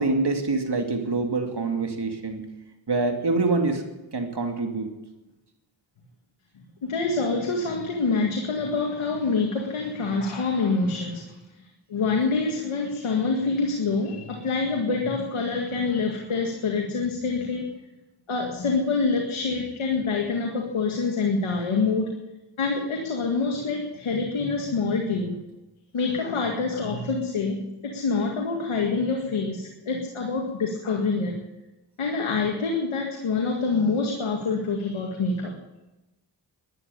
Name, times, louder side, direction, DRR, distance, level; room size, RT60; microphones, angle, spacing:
voice 1, 0.0-2.4 2.9-3.8 4.1-4.9, right 3 dB, 55° right, 4 dB, 2.6 m, -25 dB
voice 2, 6.8-11.3 11.9-17.7 18.3-22.1 22.6-25.4 25.9-31.3 32.0-35.5, left 4 dB, 85° left, 1 dB, 2.0 m, -26 dB
12.0 x 11.0 x 9.9 m, 1.0 s
cardioid pair, 45°, 48 cm